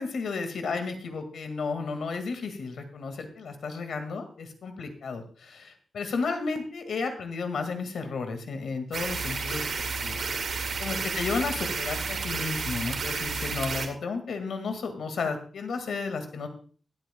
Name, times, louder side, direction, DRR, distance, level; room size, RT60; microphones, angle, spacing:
voice 1, 0.0-10.5 10.8-16.5, left 4 dB, 80° left, 7 dB, 1.9 m, -33 dB
sound 1, 8.9-13.9, right 4 dB, 65° right, 2.0 m, -31 dB
22.5 x 8.6 x 2.3 m, 0.42 s
wide cardioid pair, 175°, 0 cm